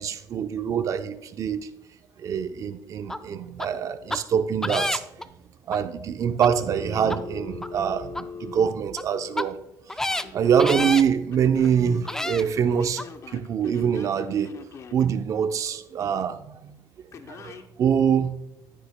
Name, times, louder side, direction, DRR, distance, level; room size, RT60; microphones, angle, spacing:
voice 1, 0.0-1.7 2.2-5.0 5.7-8.1 8.4-9.5 10.1-13.0 13.3-14.5 14.9-16.8 17.3-17.5 17.8-18.3, right 7 dB, 50° right, 0.6 m, -24 dB
sound 1, 3.1-3.2 3.6-3.7 4.1-4.2 4.6-5.2 5.7-5.8 6.4-6.5 7.0-7.2 7.6-7.7 8.1-8.2 8.9-9.0 9.4-9.5 9.9-10.2 10.6-11.0 11.6-11.7 12.1-12.4 13.0-13.1, left 1 dB, 5° left, 0.4 m, -28 dB
Telephone, 6.7-9.4 10.1-10.8 11.3-15.1 17.1-17.7, left 6 dB, 45° left, 0.7 m, -41 dB
11.0 x 10.0 x 2.2 m
cardioid pair, 105°, 7 cm